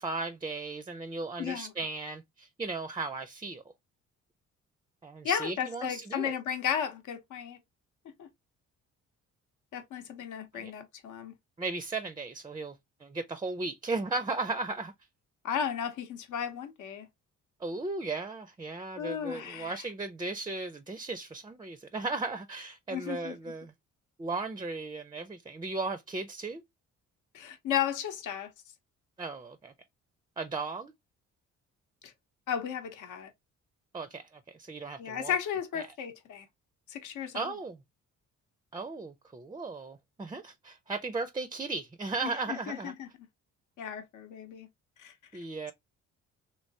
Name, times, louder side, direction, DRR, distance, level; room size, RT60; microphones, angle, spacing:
voice 1, 0.0-3.6 5.0-6.3 10.5-10.7 11.6-14.9 17.6-23.7 24.2-26.6 29.2-29.7 30.4-30.9 33.9-35.4 35.8-35.9 37.3-37.8 38.7-42.9 45.3-45.7, right 3 dB, 15° right, 0.4 m, -36 dB
voice 2, 1.4-1.7 5.2-7.6 8.2-8.3 9.7-11.3 15.4-17.1 19.0-19.8 22.9-23.4 27.3-28.5 32.0-32.1 32.5-33.3 35.0-36.5 36.9-37.5 42.2-43.1 43.8-44.7 45.0-45.1, left 8 dB, 80° left, 0.8 m, -34 dB
3.2 x 3.0 x 2.7 m
cardioid pair, 90°, 30 cm